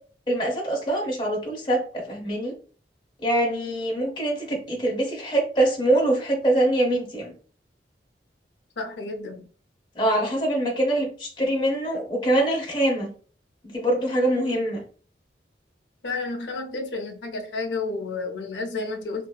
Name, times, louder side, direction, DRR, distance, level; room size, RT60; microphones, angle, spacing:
voice 1, 0.3-2.5 3.2-7.3 10.0-13.1 13.7-14.8, right 1 dB, 25° left, 0.8 m, -24 dB
voice 2, 8.8-9.5 16.0-19.3, left 3 dB, 90° left, 0.6 m, -31 dB
2.8 x 2.6 x 2.2 m
head